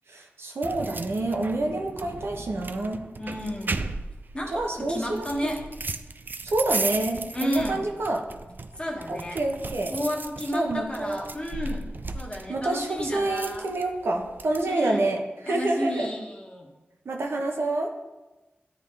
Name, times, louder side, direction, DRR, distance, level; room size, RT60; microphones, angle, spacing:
voice 1, 0.1-3.0 4.5-5.6 6.4-8.2 9.1-9.9 10.5-11.2 12.5-16.1 17.1-17.9, right 2 dB, 85° right, 1 dB, 0.7 m, -28 dB
sound 1, 0.6-14.6, right 3 dB, 50° right, 0.3 m, -36 dB
voice 2, 3.2-3.9 4.3-5.6 7.3-7.8 8.8-9.4 9.9-11.9 12.1-13.7 14.7-15.0 15.5-16.7, equal, 25° left, -1 dB, 1.3 m, -32 dB
9.9 x 3.6 x 3.3 m, 1.1 s
cardioid pair, 50°, 4 cm